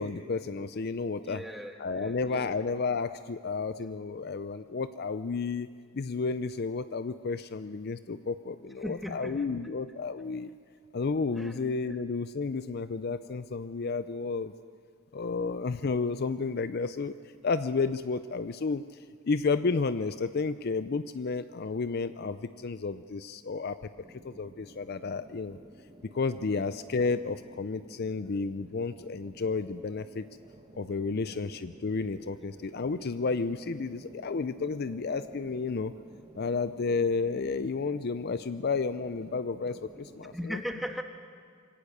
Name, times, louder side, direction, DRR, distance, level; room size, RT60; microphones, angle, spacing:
voice 1, 0.0-1.4 1.8-5.7 5.9-10.5 10.9-14.5 15.1-17.1 17.4-18.8 19.2-23.8 24.1-25.6 26.1-30.2 30.7-35.9 36.4-40.6, left 4 dB, 50° left, 13 dB, 0.5 m, -31 dB
voice 2, 1.2-2.5 8.8-9.5 11.3-11.6 11.9-12.0 26.5-26.7 31.1-31.4 40.3-41.0, equal, ahead, 4 dB, 1.3 m, -39 dB
sound 1, 24.0-40.4, right 1 dB, 25° right, 1.2 m, -53 dB
24.0 x 17.5 x 6.7 m, 2.1 s
head